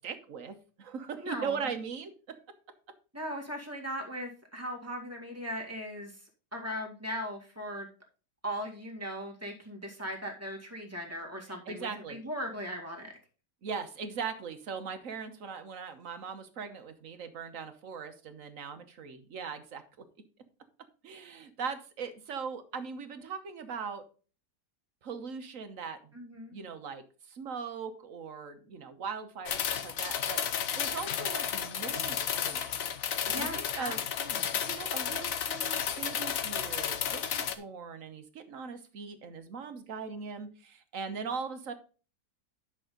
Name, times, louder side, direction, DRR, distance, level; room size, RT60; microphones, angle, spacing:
voice 1, 0.0-2.3 11.7-12.2 13.6-20.0 21.0-24.0 25.0-26.2 26.5-32.8 33.2-34.0 34.6-41.7, right 6 dB, 55° right, 8 dB, 1.4 m, -40 dB
voice 2, 1.2-1.6 3.1-6.1 6.5-7.9 8.4-13.1 26.1-26.5 33.3-34.5, equal, 10° right, 0 dB, 2.1 m, -38 dB
sound 1, 29.5-37.5, left 8 dB, 60° left, 1.1 m, -32 dB
10.5 x 6.3 x 3.8 m, 0.37 s
omnidirectional pair, 1.8 m